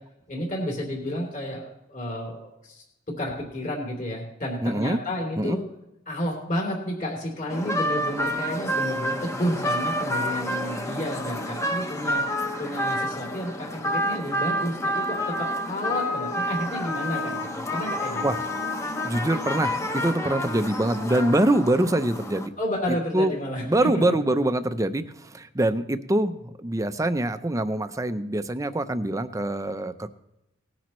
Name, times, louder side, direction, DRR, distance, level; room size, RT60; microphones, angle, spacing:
voice 1, 0.3-2.8 3.2-5.6 6.1-12.2 12.6-15.3 15.6-18.2 22.6-24.0, equal, 45° left, -1 dB, 3.2 m, -31 dB
voice 2, 4.6-5.0 5.4-5.6 18.2-18.4 19.0-22.5 22.9-23.3 23.7-30.1, right 1 dB, 15° right, 10 dB, 0.6 m, -24 dB
sound 1, 7.5-22.5, equal, 15° left, 0.9 m, -29 dB
19.0 x 10.5 x 3.1 m, 0.88 s
head